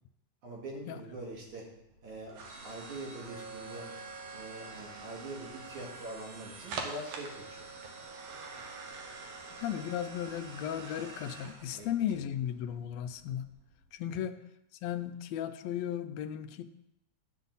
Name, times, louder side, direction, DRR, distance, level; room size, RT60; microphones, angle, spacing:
voice 1, 0.4-1.7 2.0-2.3 2.6-3.9 4.3-7.7 8.0-8.4 11.7-11.9 12.1-12.3 14.2-14.3, right 2 dB, 85° right, -2 dB, 3.6 m, -44 dB
sound 1, 0.8-13.9, right 4 dB, 65° right, 2.2 m, -46 dB
Bowed string instrument, 3.6-10.4, left 1 dB, 10° right, 3.8 m, -66 dB
voice 2, 9.6-13.4 13.9-14.4 14.8-16.6, left 10 dB, 75° left, 8 dB, 1.7 m, -35 dB
9.9 x 8.3 x 4.1 m, 0.84 s
omnidirectional pair, 3.3 m